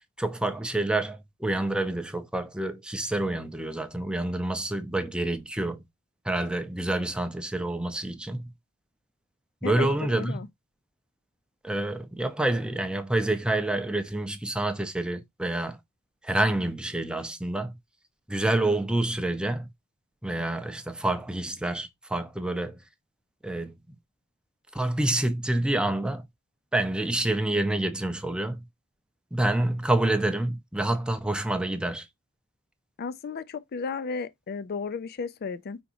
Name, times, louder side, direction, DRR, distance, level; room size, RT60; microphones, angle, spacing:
voice 1, 0.2-5.8 6.2-8.5 9.6-10.4 11.6-15.8 16.2-17.8 18.3-19.7 20.2-22.8 23.4-24.0 24.7-26.3 26.7-28.6 29.3-32.1, right 1 dB, 5° right, 0.5 m, -28 dB
voice 2, 9.6-10.5 33.0-35.8, left 5 dB, 45° left, 0.4 m, -34 dB
5.1 x 3.5 x 2.9 m
head